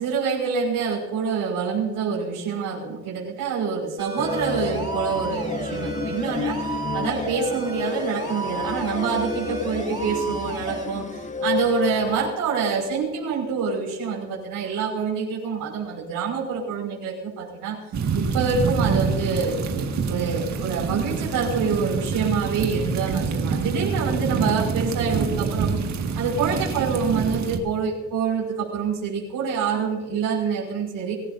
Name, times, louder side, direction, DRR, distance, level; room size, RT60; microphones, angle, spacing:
voice 1, 0.0-17.8 18.1-19.6 20.1-25.8 26.2-31.1, right 5 dB, 80° right, -3 dB, 5.5 m, -26 dB
sound 1, 4.0-10.8, right 2 dB, 15° right, 3.7 m, -33 dB
sound 2, 4.2-12.3, left 4 dB, 20° left, 0.8 m, -31 dB
sound 3, 17.9-27.6, right 5 dB, 55° right, 2.0 m, -26 dB
25.0 x 14.5 x 2.7 m, 1.3 s
cardioid pair, 135°, 34 cm